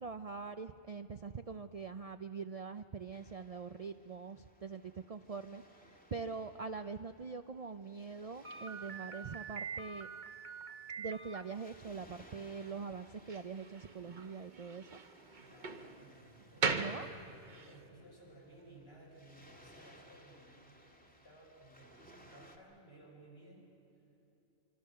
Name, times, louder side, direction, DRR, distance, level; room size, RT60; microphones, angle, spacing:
voice 1, 0.0-10.1 11.0-15.0 16.7-17.1, right 5 dB, 70° right, 9 dB, 0.3 m, -43 dB
Waves surf, 3.1-22.6, equal, 5° left, 2.0 m, -63 dB
Slam, 8.4-17.8, right 4 dB, 35° right, 1.1 m, -42 dB
voice 2, 15.4-23.7, right 1 dB, 45° left, -3 dB, 6.8 m, -58 dB
25.5 x 25.5 x 6.6 m, 3.0 s
omnidirectional pair, 1.4 m